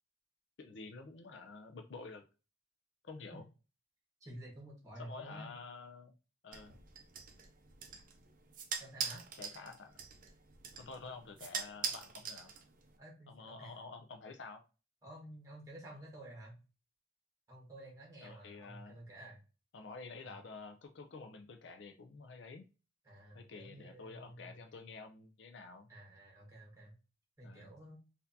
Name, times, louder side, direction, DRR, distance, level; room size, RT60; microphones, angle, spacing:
voice 1, 0.6-2.2 3.0-3.5 5.0-6.1 6.4-6.8 9.4-9.9 10.8-12.5 13.3-14.6 18.2-19.0 19.7-22.7 23.3-25.9 27.4-27.7, left 4 dB, 65° left, 6 dB, 0.5 m, -49 dB
voice 2, 4.2-5.6 8.8-9.3 13.0-13.7 15.0-16.6 17.5-19.4 20.2-20.4 23.0-24.5 25.9-26.9 27.4-28.0, right 1 dB, 15° right, -1 dB, 1.4 m, -51 dB
sound 1, 6.5-13.0, right 6 dB, 45° right, 0.5 m, -44 dB
4.2 x 2.7 x 2.6 m, 0.32 s
head